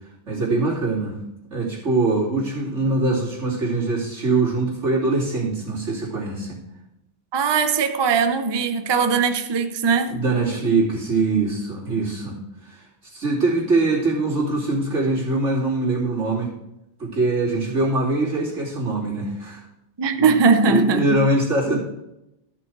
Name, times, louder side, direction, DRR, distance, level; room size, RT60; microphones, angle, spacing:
voice 1, 0.3-1.2 1.5-6.6 10.1-16.5 17.0-19.6 20.2-20.3 20.6-21.8, right 2 dB, 90° right, -6 dB, 3.4 m, -23 dB
voice 2, 7.3-10.2 20.0-21.3, right 5 dB, 30° right, 8 dB, 0.5 m, -20 dB
13.5 x 6.1 x 4.7 m, 0.88 s
omnidirectional pair, 1.2 m